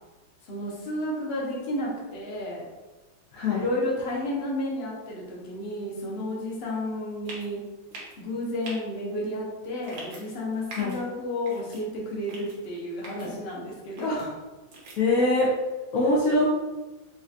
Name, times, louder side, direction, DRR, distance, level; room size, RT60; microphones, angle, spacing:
voice 1, 0.4-2.7 3.5-7.6 8.2-14.4, left 1 dB, 55° left, -3 dB, 0.7 m, -31 dB
voice 2, 3.3-3.6 10.7-11.0 15.0-15.5 15.9-16.5, left 2 dB, 85° left, -4 dB, 0.7 m, -22 dB
snapping vingers, 7.3-7.5 7.9-8.2 8.6-8.8 9.8-10.2 10.7-11.0 11.5-11.8 12.3-12.6 13.0-13.3 14.0-14.2 14.7-15.0, right 2 dB, 70° right, 1.7 m, -42 dB
5.2 x 2.4 x 2.8 m, 1.2 s
omnidirectional pair, 2.3 m